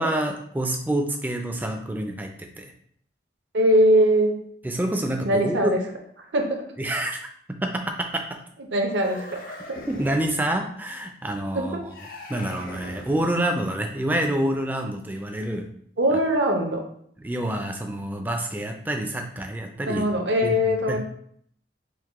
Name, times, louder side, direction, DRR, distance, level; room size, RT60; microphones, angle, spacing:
voice 1, 0.0-2.7 4.6-5.8 6.8-7.2 7.6-8.3 9.9-11.9 12.3-15.7 17.2-20.1 20.4-21.0, right 1 dB, 10° right, 4 dB, 0.3 m, -27 dB
voice 2, 3.5-4.4 5.2-5.8 6.3-6.6 8.7-9.8 11.5-11.8 16.0-16.8 19.8-21.0, equal, 75° right, 3 dB, 0.7 m, -21 dB
sound 1, 8.9-10.5 11.9-13.5, left 2 dB, 50° left, 0.5 m, -41 dB
4.6 x 2.2 x 3.5 m, 0.65 s
head